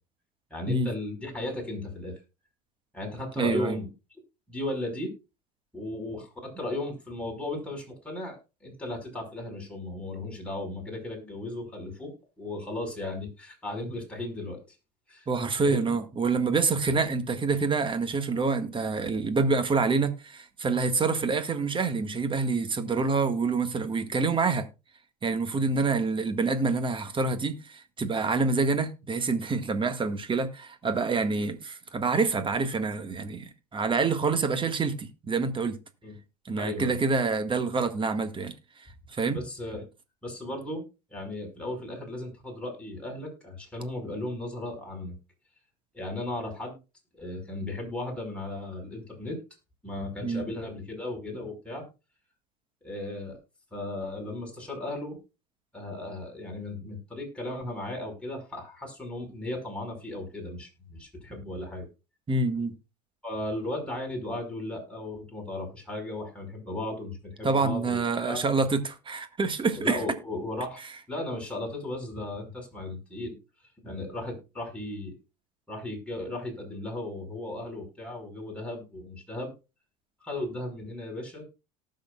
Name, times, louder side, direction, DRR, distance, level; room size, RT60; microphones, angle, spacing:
voice 1, 0.5-2.2 2.9-3.9 4.5-5.1 5.7-12.1 12.4-14.6 15.1-15.3 15.6-15.9 25.5-25.7 36.0-36.2 36.6-37.0 39.3-39.9 40.2-45.2 45.9-46.7 47.2-49.4 49.8-51.8 52.8-53.4 53.7-55.2 55.7-61.9 63.2-68.5 69.8-70.8 71.1-73.4 73.8-75.1 75.7-79.5 80.2-81.4, left 1 dB, 5° left, 5.2 m, -36 dB
voice 2, 3.4-3.8 15.3-24.7 25.2-35.8 36.5-38.6 39.1-39.4 50.2-50.5 62.3-62.7 67.4-70.0, right 4 dB, 25° right, 1.7 m, -27 dB
18.5 x 6.5 x 2.4 m
hypercardioid pair, 80°, 20 cm